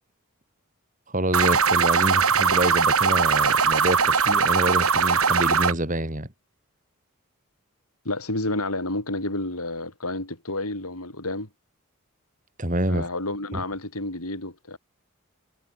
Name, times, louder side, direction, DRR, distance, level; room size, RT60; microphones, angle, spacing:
voice 1, 1.1-6.3 12.6-13.1 13.5-13.6, right 1 dB, 35° right, 5.5 m, -27 dB
sound 1, 1.3-5.7, right 6 dB, 80° right, 3.6 m, -20 dB
voice 2, 8.1-11.5 12.9-14.8, left 2 dB, 85° left, 7.3 m, -30 dB
head